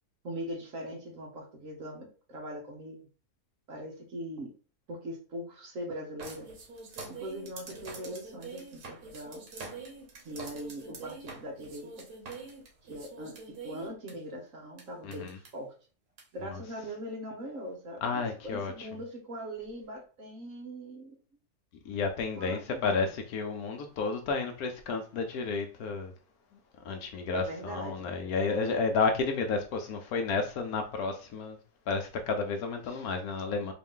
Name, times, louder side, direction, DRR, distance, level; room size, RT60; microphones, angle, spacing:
voice 1, 0.2-3.0 3.7-4.5 4.9-6.5 7.1-9.4 10.2-12.1 12.8-15.7 16.3-21.2 22.4-23.1 27.3-28.1, equal, 55° right, 1.3 m, -41 dB
sound 1, 6.2-14.1 14.8-14.9 15.1-15.5 16.2-16.3, right 4 dB, 75° right, 1.6 m, -45 dB
voice 2, 18.0-18.7 21.8-26.1 26.8-31.6 31.9-33.7, left 4 dB, 70° left, 1.1 m, -31 dB
3.8 x 2.6 x 3.6 m
omnidirectional pair, 1.7 m